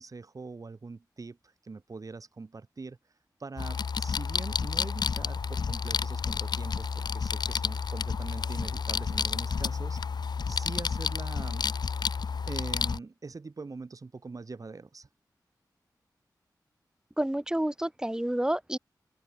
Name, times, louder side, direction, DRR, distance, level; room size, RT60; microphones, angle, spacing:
voice 1, 0.0-3.0 3.4-11.7 12.5-15.1, right 4 dB, 50° right, 5.3 m, -43 dB
sound 1, 3.6-13.0, left 5 dB, 75° left, 1.9 m, -30 dB
voice 2, 17.2-18.8, right 1 dB, 10° right, 0.8 m, -29 dB
open air
wide cardioid pair, 80°, 7 cm